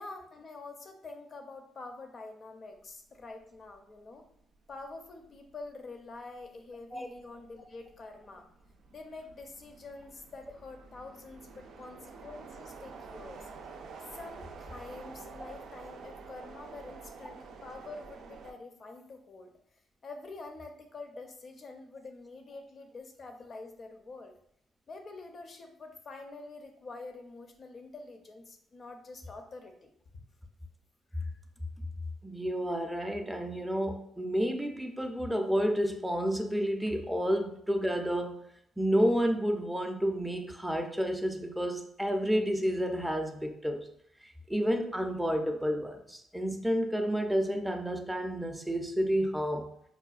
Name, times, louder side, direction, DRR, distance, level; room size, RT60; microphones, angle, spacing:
voice 1, 0.0-4.2 4.7-8.5 8.9-13.5 14.1-19.5 20.0-24.3 24.9-29.9 31.1-31.3 49.7-49.8, left 3 dB, 45° left, 5 dB, 0.6 m, -46 dB
sound 1, 3.5-3.8 4.2-18.5, right 4 dB, 75° right, 0.4 m, -49 dB
voice 2, 32.2-38.5 38.8-43.9 44.2-49.7, equal, 5° right, 3 dB, 0.5 m, -30 dB
4.8 x 2.2 x 2.4 m, 0.70 s
cardioid pair, 90°, 0 cm